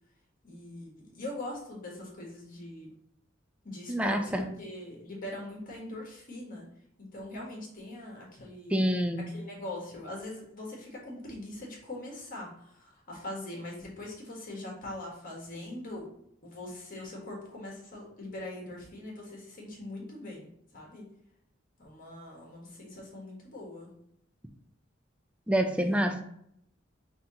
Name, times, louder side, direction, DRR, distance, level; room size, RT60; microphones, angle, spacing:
voice 1, 0.4-2.9 3.6-6.6 7.1-8.8 9.3-16.1 16.4-21.1 21.8-23.9 25.6-26.0, left 1 dB, 45° left, -2 dB, 1.5 m, -42 dB
voice 2, 3.9-4.5 8.7-9.3 25.5-26.2, right 1 dB, 5° right, 6 dB, 0.4 m, -27 dB
5.5 x 2.8 x 2.8 m, 0.74 s
head